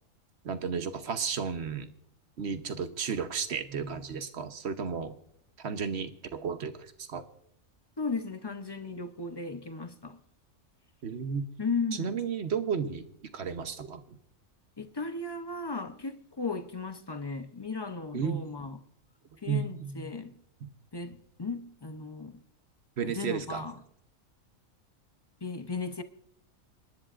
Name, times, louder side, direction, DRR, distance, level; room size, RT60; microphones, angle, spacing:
voice 1, 0.4-1.9 2.4-5.2 5.6-7.2 11.0-11.5 11.9-13.1 13.3-14.0 18.1-18.4 19.5-20.0 20.6-20.7 23.0-23.6, right 6 dB, 55° right, 1.1 m, -33 dB
voice 2, 8.0-10.2 11.6-12.2 14.8-18.8 19.4-20.4 20.9-22.4 23.0-23.8 25.4-26.0, left 4 dB, 30° left, 0.5 m, -36 dB
27.5 x 10.5 x 2.5 m
omnidirectional pair, 1.4 m